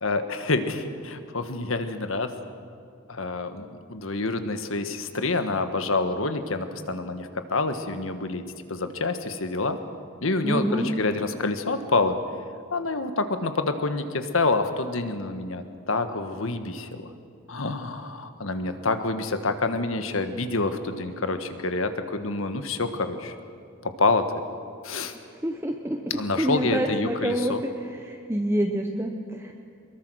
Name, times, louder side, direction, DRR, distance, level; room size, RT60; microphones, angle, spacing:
voice 1, 0.0-2.3 3.1-8.4 8.7-9.8 10.2-12.2 12.7-17.1 17.5-23.3 23.8-24.3 24.8-25.1 26.1-27.6, left 3 dB, 75° left, 8 dB, 1.5 m, -27 dB
voice 2, 10.4-10.9 25.3-26.0 26.4-27.7 28.0-29.5, equal, 10° right, 2 dB, 1.1 m, -27 dB
24.5 x 22.0 x 6.4 m, 2.3 s
head